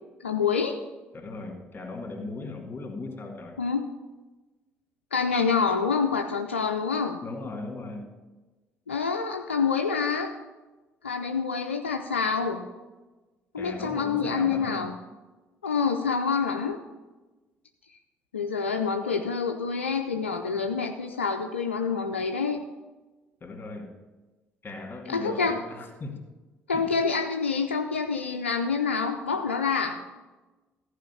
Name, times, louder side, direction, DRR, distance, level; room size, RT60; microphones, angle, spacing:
voice 1, 0.2-0.8 3.6-3.9 5.1-7.2 8.9-10.3 11.0-12.7 13.5-14.9 15.6-16.8 18.3-22.6 25.1-25.6 26.7-30.0, left 5 dB, 85° left, 5 dB, 0.5 m, -27 dB
voice 2, 1.1-3.6 7.2-8.1 13.6-14.8 23.4-24.0 24.6-26.3 26.7-26.9, left 3 dB, 30° left, 3 dB, 2.4 m, -38 dB
14.0 x 4.9 x 7.0 m, 1.2 s
figure-of-eight pair, 50°, 6 cm